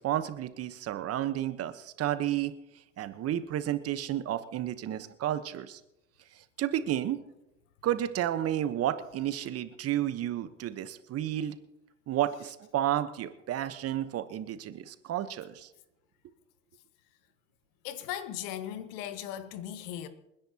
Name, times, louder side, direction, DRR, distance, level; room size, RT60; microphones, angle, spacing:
voice 1, 0.0-2.5 3.0-5.8 6.4-7.2 7.8-11.6 12.1-15.7, right 12 dB, 40° right, 1.1 m, -31 dB
voice 2, 17.8-20.1, left 11 dB, 60° left, 1.6 m, -38 dB
28.5 x 10.5 x 2.9 m
hypercardioid pair, 80°, 37 cm